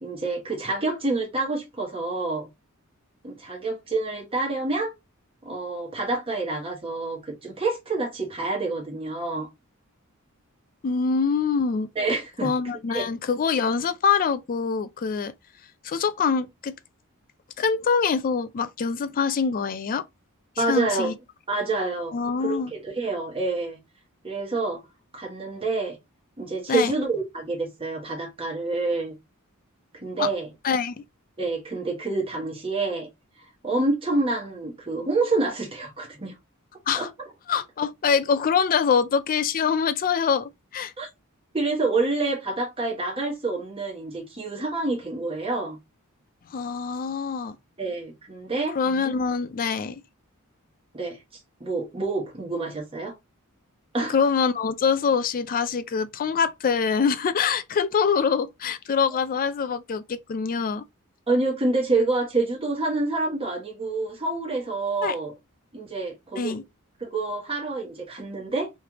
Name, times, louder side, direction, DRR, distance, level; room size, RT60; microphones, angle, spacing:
voice 1, 0.0-2.5 3.2-4.9 5.4-9.5 11.9-12.5 12.9-13.1 20.6-21.1 21.5-23.8 24.2-24.8 25.1-26.0 26.4-29.1 29.9-30.5 31.4-33.1 33.4-36.3 36.9-37.1 41.0-41.1 41.5-45.8 47.8-48.8 50.9-53.1 53.9-54.2 61.3-65.3 65.7-66.6 67.0-68.7, right 3 dB, 25° right, 1.3 m, -27 dB
voice 2, 10.8-11.9 12.4-15.3 15.8-16.8 17.6-20.0 20.6-21.1 22.1-22.7 26.7-26.9 30.2-30.3 30.6-31.0 36.9-37.1 37.5-40.9 46.5-47.6 48.8-50.0 54.1-60.8 65.0-65.1 66.4-66.6, left 6 dB, 40° left, 0.4 m, -24 dB
3.3 x 3.1 x 3.5 m
head